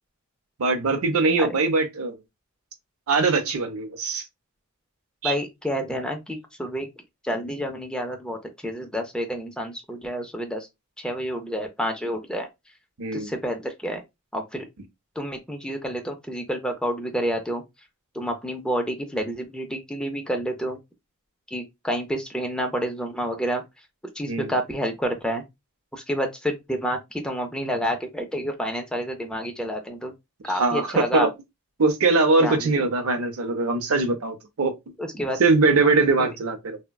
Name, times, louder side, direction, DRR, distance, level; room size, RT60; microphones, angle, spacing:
voice 1, 0.6-2.2 3.1-4.2 5.2-5.3 13.0-13.3 24.3-24.5 30.5-31.3 31.8-34.7 35.4-36.8, right 3 dB, 75° right, 0.6 m, -22 dB
voice 2, 5.2-6.9 7.2-10.7 11.0-12.5 13.1-14.0 14.3-14.7 15.2-17.6 18.1-20.8 21.5-23.6 24.2-25.4 25.9-30.1 30.4-31.3 32.4-32.9 35.0-35.4 36.2-36.3, equal, 5° left, 0.4 m, -29 dB
3.5 x 2.1 x 2.2 m
head